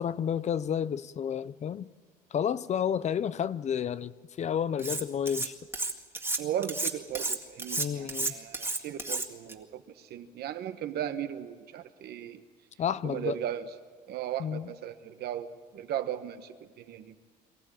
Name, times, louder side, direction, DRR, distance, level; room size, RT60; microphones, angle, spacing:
voice 1, 0.0-1.9 2.3-5.5 7.8-8.3 12.8-13.4 14.4-14.7, left 8 dB, 45° left, 17 dB, 0.6 m, -31 dB
Cutlery silverware, 4.8-5.5 5.7-9.5, right 2 dB, 15° right, 2.0 m, -32 dB
voice 2, 6.4-12.4 13.0-13.7 14.1-17.2, right 10 dB, 70° right, 9 dB, 1.3 m, -36 dB
23.5 x 14.5 x 9.0 m, 1.5 s
cardioid pair, 110°, 17 cm